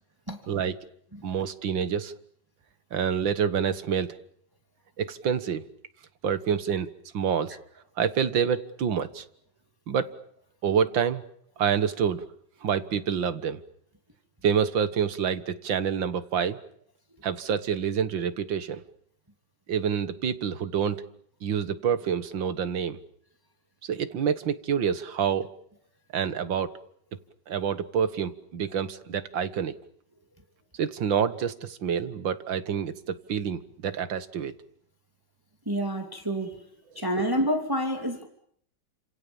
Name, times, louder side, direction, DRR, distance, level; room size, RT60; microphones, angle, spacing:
voice 1, 1.2-2.1 2.9-4.1 5.0-5.6 6.2-7.6 8.0-9.2 9.9-10.1 10.6-11.2 11.6-12.2 12.6-13.6 14.4-16.6 17.2-18.8 19.7-21.0 21.4-23.0 23.8-25.5 26.1-26.7 27.5-29.7 30.8-34.5, right 7 dB, 80° right, 12 dB, 2.2 m, -27 dB
voice 2, 35.7-36.7 36.9-38.2, equal, 10° right, 4 dB, 2.7 m, -28 dB
30.0 x 27.0 x 7.2 m, 0.66 s
omnidirectional pair, 2.0 m